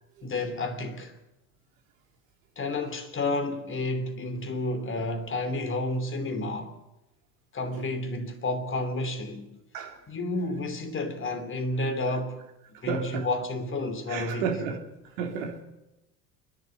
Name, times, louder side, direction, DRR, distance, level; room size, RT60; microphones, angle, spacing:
voice 1, 0.2-1.1 2.6-6.8 7.5-9.5 10.1-12.4 12.8-14.5, left 2 dB, 25° left, 2.9 m, -31 dB
voice 2, 12.9-13.3 14.1-14.8 15.2-15.6, right 6 dB, 60° right, 3.3 m, -31 dB
29.5 x 11.0 x 8.1 m
figure-of-eight pair, 70°, 44 cm